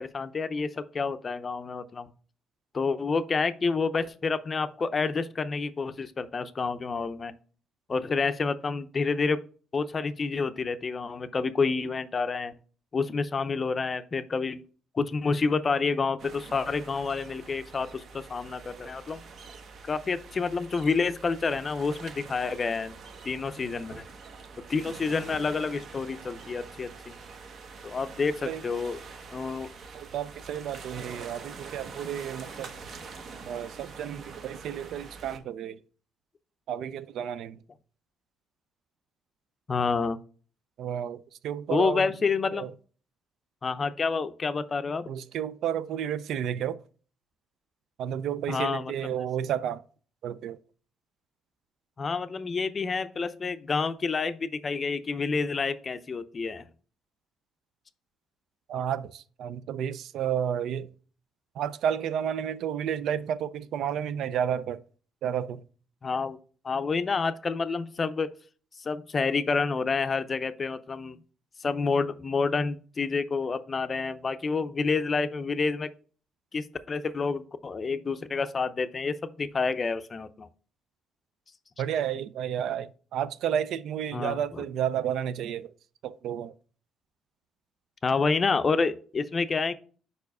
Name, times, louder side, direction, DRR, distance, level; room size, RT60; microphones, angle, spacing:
voice 1, 0.0-2.1 2.7-7.3 7.9-9.4 9.7-12.5 12.9-14.6 14.9-19.2 19.8-22.9 23.2-24.0 24.7-27.1 27.8-29.0 29.3-29.7 39.7-40.2 41.7-42.7 43.6-45.1 48.5-48.9 52.0-56.6 66.0-66.4 66.6-68.3 68.8-71.2 71.6-75.9 76.5-80.5 84.1-84.6 88.0-89.7, left 4 dB, 30° left, 0.5 m, -28 dB
sound 1, 16.2-35.4, right 4 dB, 55° right, 0.9 m, -45 dB
voice 2, 29.9-32.7 33.5-35.8 36.7-37.6 40.8-42.1 42.5-42.7 45.1-46.8 48.0-49.8 50.2-50.6 58.7-60.9 61.6-64.8 65.2-65.6 81.8-85.7 86.0-86.5, right 9 dB, 70° right, 0.4 m, -31 dB
4.8 x 4.7 x 4.7 m
cardioid pair, 115°, 0 cm